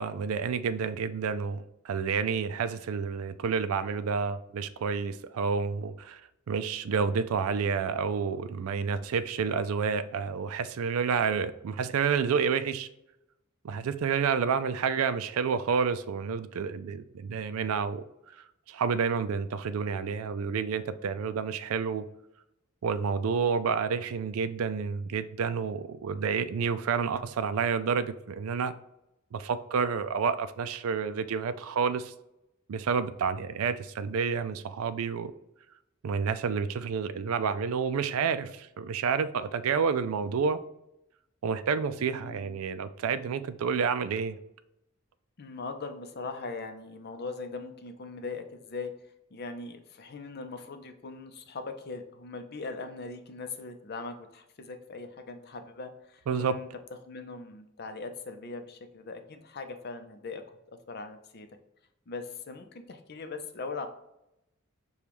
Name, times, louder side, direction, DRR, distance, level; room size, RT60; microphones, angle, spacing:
voice 1, 0.0-6.2 6.5-12.9 13.6-18.0 18.7-22.0 22.8-28.7 29.3-32.1 32.7-35.3 36.0-40.6 41.4-44.4 56.3-56.5, right 6 dB, 80° right, 13 dB, 0.4 m, -29 dB
voice 2, 42.0-42.5 45.4-48.9 49.3-56.7 57.0-60.4 60.7-61.5 62.1-63.9, left 4 dB, 50° left, 7 dB, 0.6 m, -40 dB
6.8 x 2.3 x 3.0 m, 0.85 s
head